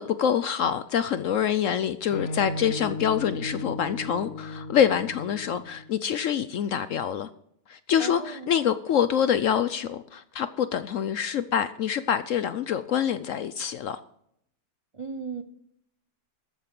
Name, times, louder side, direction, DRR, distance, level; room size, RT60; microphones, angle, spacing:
voice 1, 0.0-7.3 7.7-14.0, left 8 dB, 65° left, 0.8 m, -26 dB
sound 1, 2.1-5.9, left 2 dB, 50° left, 1.4 m, -35 dB
voice 2, 8.0-8.5 14.9-15.4, right 4 dB, 45° right, 0.4 m, -36 dB
13.5 x 8.9 x 6.0 m
omnidirectional pair, 1.8 m